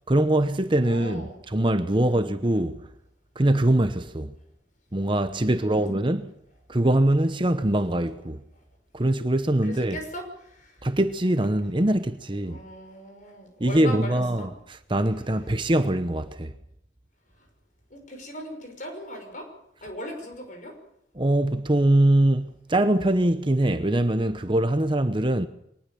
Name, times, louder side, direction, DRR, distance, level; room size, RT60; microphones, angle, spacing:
voice 1, 0.1-2.8 3.4-4.3 4.9-6.3 6.7-8.4 8.9-10.0 10.8-12.6 13.6-16.5 21.2-25.5, right 1 dB, 25° right, 0.9 m, -23 dB
voice 2, 0.8-1.4 1.9-2.3 5.4-5.9 9.6-10.9 12.4-14.5 17.4-17.5 17.9-19.5 19.8-20.8, equal, 45° left, 5.8 m, -39 dB
23.0 x 19.5 x 7.0 m
head